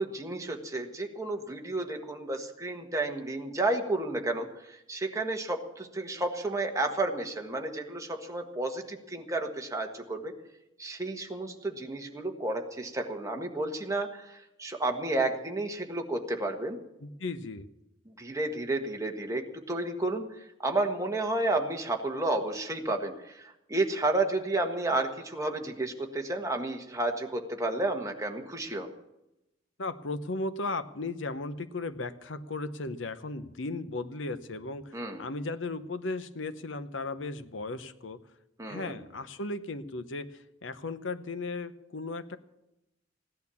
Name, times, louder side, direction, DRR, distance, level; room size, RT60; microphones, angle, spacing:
voice 1, 0.0-10.3 10.8-16.8 18.2-20.2 20.6-28.9 34.9-35.2 38.6-39.0, right 2 dB, 15° right, 3 dB, 1.5 m, -31 dB
voice 2, 17.0-17.7 29.8-38.2 38.6-42.4, left 3 dB, 75° left, 12 dB, 0.9 m, -36 dB
16.0 x 11.0 x 7.0 m, 0.90 s
head